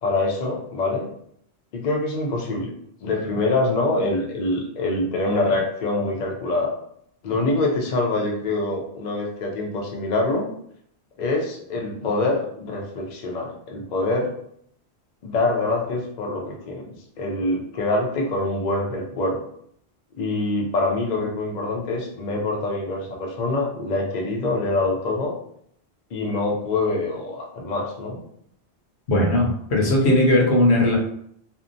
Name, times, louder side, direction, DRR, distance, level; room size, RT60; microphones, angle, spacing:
voice 1, 0.0-1.1 1.7-2.7 3.0-6.7 7.2-10.5 11.2-14.3 15.2-16.9 17.2-19.4 20.2-25.4 26.1-28.2, left 2 dB, 55° left, -1 dB, 0.6 m, -25 dB
voice 2, 29.1-31.0, left 1 dB, 75° left, -1 dB, 0.9 m, -18 dB
2.6 x 2.1 x 2.5 m, 0.68 s
omnidirectional pair, 1.1 m